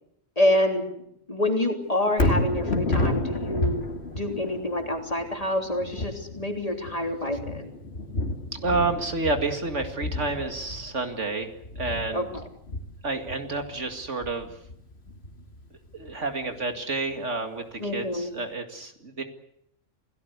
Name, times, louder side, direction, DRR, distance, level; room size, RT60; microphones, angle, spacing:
voice 1, 0.4-1.0 1.3-7.7 12.1-12.3 17.8-18.3, left 1 dB, 30° left, 3 dB, 3.5 m, -27 dB
Thunder, 2.1-16.3 16.8-16.9, left 2 dB, 50° left, 2.7 m, -31 dB
voice 2, 8.6-12.3 13.0-14.5 15.9-19.2, right 3 dB, 65° right, 6 dB, 2.5 m, -29 dB
28.0 x 17.5 x 8.1 m, 0.75 s
omnidirectional pair, 1.4 m